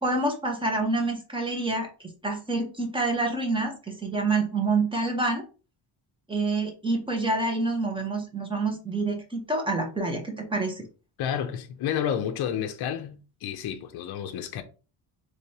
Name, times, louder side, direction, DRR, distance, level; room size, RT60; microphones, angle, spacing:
voice 1, 0.0-1.9 2.2-5.4 6.3-10.8, right 3 dB, 10° right, 0.8 m, -27 dB
voice 2, 11.2-14.6, left 9 dB, 55° left, 0.6 m, -30 dB
3.3 x 3.3 x 2.7 m
cardioid pair, 165°, 47 cm